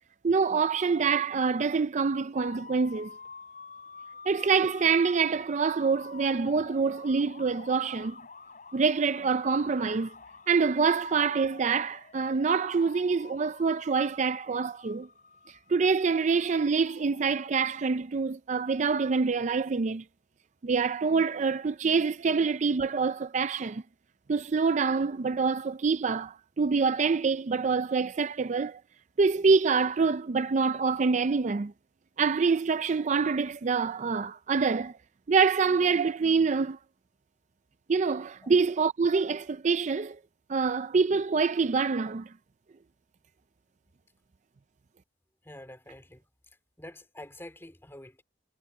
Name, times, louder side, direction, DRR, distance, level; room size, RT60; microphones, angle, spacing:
voice 1, 0.2-3.1 4.3-8.2 8.7-10.1 10.5-15.1 15.7-20.0 20.6-23.8 24.3-28.8 29.2-31.7 32.2-34.9 35.3-36.8 37.9-40.2 40.5-42.3, right 5 dB, 40° right, 0.4 m, -26 dB
sound 1, 2.3-17.8, left 4 dB, 50° left, 5.4 m, -48 dB
voice 2, 45.4-46.2 46.8-48.2, left 1 dB, 15° left, 2.6 m, -47 dB
head